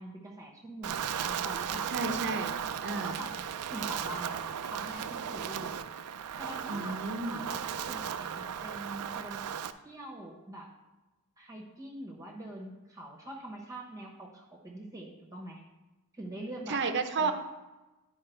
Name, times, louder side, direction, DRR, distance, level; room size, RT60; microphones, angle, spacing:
voice 1, 0.0-1.9 2.9-3.4 3.7-5.9 6.4-7.0 7.3-7.6 7.9-9.4 9.8-10.7 11.4-15.6 16.1-16.8 17.2-17.3, right 1 dB, 15° right, -1 dB, 1.0 m, -44 dB
Wind, 0.8-9.7, right 8 dB, 90° right, 0.4 m, -36 dB
voice 2, 1.9-2.5 2.8-3.2 6.7-7.5 16.7-17.3, right 4 dB, 50° right, 7 dB, 0.7 m, -32 dB
10.5 x 4.6 x 4.5 m, 1.1 s
head